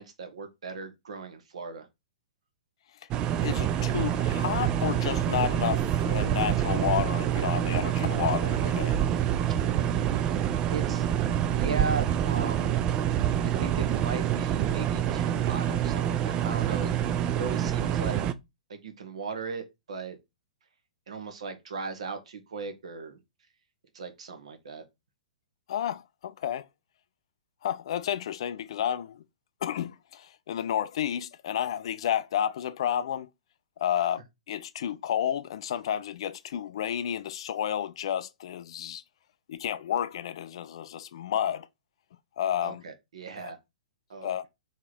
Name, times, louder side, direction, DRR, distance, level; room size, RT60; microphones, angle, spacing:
voice 1, 0.0-1.9 10.7-11.0 11.5-12.8 13.6-18.2 18.7-20.2 21.1-23.2 23.9-24.8 42.6-43.6 44.1-44.5, right 4 dB, 60° right, 1.2 m, -37 dB
sound 1, 3.1-18.3, right 10 dB, 25° right, 0.4 m, -27 dB
voice 2, 3.4-9.0 25.7-26.7 27.6-29.2 29.6-33.3 33.8-34.2 34.5-39.0 39.5-41.7 42.4-42.8 43.4-43.5 44.2-44.4, left 10 dB, 50° left, 0.4 m, -31 dB
3.6 x 3.2 x 4.3 m
figure-of-eight pair, 110°, 4 cm